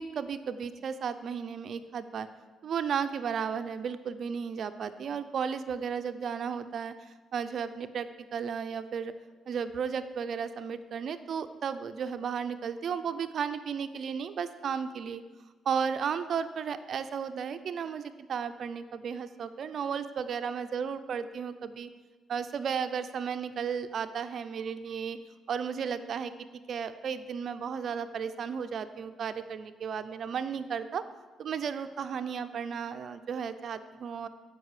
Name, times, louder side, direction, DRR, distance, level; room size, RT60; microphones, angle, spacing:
voice 1, 0.0-2.3 2.6-9.1 9.5-15.2 15.7-21.9 22.3-25.2 25.5-26.3 26.7-31.0 31.4-34.3, right 7 dB, 60° right, 11 dB, 0.5 m, -34 dB
14.5 x 5.4 x 4.9 m, 1.3 s
cardioid pair, 90°, 0 cm